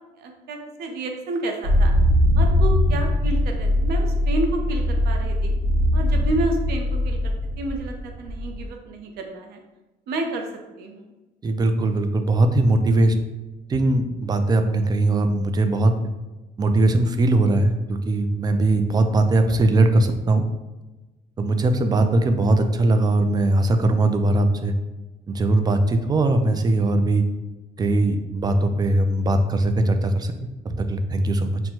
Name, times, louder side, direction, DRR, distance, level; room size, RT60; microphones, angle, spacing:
voice 1, 0.2-1.9 2.4-5.5 5.9-9.6 10.1-10.5 10.8-11.1, right 2 dB, 70° right, 3 dB, 0.7 m, -30 dB
sound 1, 1.6-8.7, left 1 dB, 40° right, 0.9 m, -21 dB
voice 2, 11.4-13.1 13.7-15.9 16.6-20.4 21.4-24.7 25.3-27.2 27.8-31.6, right 2 dB, 25° right, 7 dB, 0.4 m, -20 dB
6.0 x 2.2 x 2.8 m, 1.1 s
cardioid pair, 110°, 17 cm